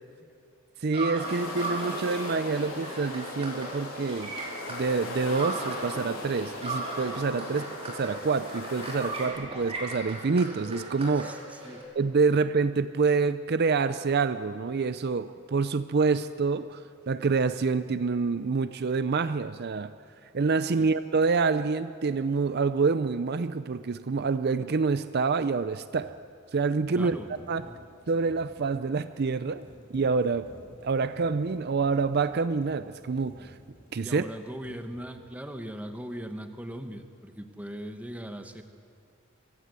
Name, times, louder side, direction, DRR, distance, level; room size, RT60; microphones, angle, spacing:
voice 1, 0.8-4.3 4.7-11.3 12.0-19.9 20.3-26.1 26.5-27.2 27.5-27.6 28.1-29.6 29.9-30.5 30.8-33.5 33.9-34.2, right 4 dB, 50° right, 12 dB, 0.5 m, -27 dB
sound 1, 0.9-6.0 6.3-11.8, right 2 dB, 30° right, 4.4 m, -38 dB
sound 2, 1.2-9.3, left 2 dB, 85° left, 3.5 m, -38 dB
voice 2, 11.1-11.8 20.8-20.9 26.9-27.3 34.0-38.6, equal, 5° right, 7 dB, 1.1 m, -39 dB
sound 3, 22.2-22.4 25.5-34.2 34.6-35.4, equal, 40° left, 5.0 m, -53 dB
23.5 x 16.0 x 8.2 m, 2.4 s
head